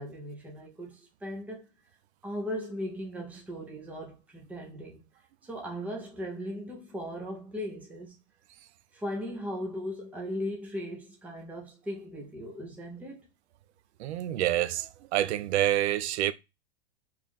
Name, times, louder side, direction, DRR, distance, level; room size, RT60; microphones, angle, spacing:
voice 1, 0.0-1.7 2.2-5.1 5.4-8.2 8.9-13.3, equal, 5° right, 0.6 m, -38 dB
voice 2, 14.0-16.3, right 12 dB, 85° right, 0.5 m, -27 dB
3.1 x 2.5 x 3.6 m
supercardioid pair, 145°, 32 cm